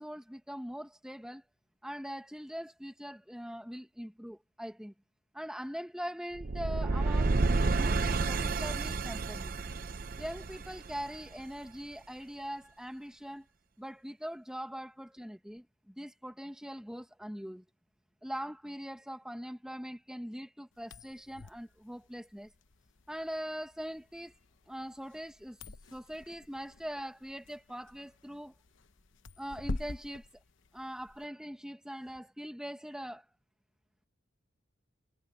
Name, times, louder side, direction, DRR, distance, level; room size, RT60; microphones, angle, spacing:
voice 1, 0.0-1.4 1.8-4.9 5.3-9.6 10.2-13.5 13.8-15.6 15.9-17.6 18.2-22.5 23.1-24.3 24.7-25.6 25.9-28.5 29.4-30.3 30.7-33.2, equal, 5° right, 1.4 m, -42 dB
sound 1, 6.3-11.4, right 3 dB, 45° right, 0.6 m, -30 dB
sound 2, 20.7-31.2, left 2 dB, 75° left, 0.9 m, -46 dB
head